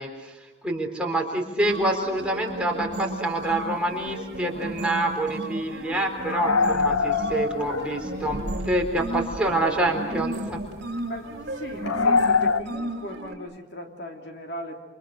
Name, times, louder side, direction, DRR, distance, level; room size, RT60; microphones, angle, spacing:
voice 1, 0.0-10.6, right 1 dB, 5° right, 0 dB, 4.1 m, -27 dB
sound 1, 1.6-13.3, right 1 dB, 55° right, 3.6 m, -34 dB
sound 2, 3.6-3.7 4.1-4.2 4.4-4.5 6.3-8.3 8.9-9.0 10.3-10.6 11.8-12.6, left 5 dB, 85° left, 1.2 m, -24 dB
sound 3, 6.7-12.7, equal, 70° left, 3.3 m, -42 dB
voice 2, 11.0-14.8, equal, 55° left, 3 dB, 3.3 m, -38 dB
29.0 x 27.0 x 6.6 m, 1.1 s
head